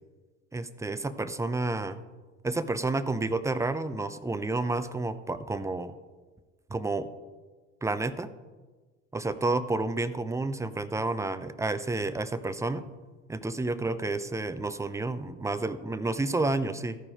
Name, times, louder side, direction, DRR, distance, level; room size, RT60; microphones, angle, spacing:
voice 1, 0.5-2.0 2.4-5.9 6.7-7.1 7.8-8.3 9.1-12.9 13.3-17.0, right 2 dB, 10° right, 12 dB, 0.5 m, -30 dB
14.0 x 4.8 x 4.9 m, 1.3 s
hypercardioid pair, 75°, 36 cm